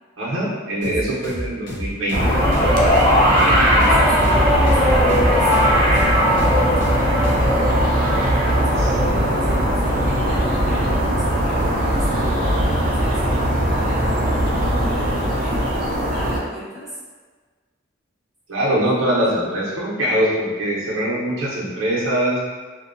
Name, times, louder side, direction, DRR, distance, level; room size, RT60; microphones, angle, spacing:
voice 1, 0.2-2.2 18.5-22.4, right 1 dB, 80° right, -5 dB, 0.6 m, -22 dB
sound 1, 0.8-7.5, equal, 65° left, 0.7 m, -30 dB
voice 2, 1.0-1.5 3.2-7.8 8.6-13.2 13.6-15.8 16.1-17.0, left 1 dB, ahead, -10 dB, 0.6 m, -36 dB
sound 2, 2.1-12.6 13.6-13.7, equal, 30° left, 1.4 m, -20 dB
sound 3, 2.1-16.4, equal, 45° right, 0.4 m, -20 dB
2.5 x 2.1 x 2.5 m, 1.4 s
head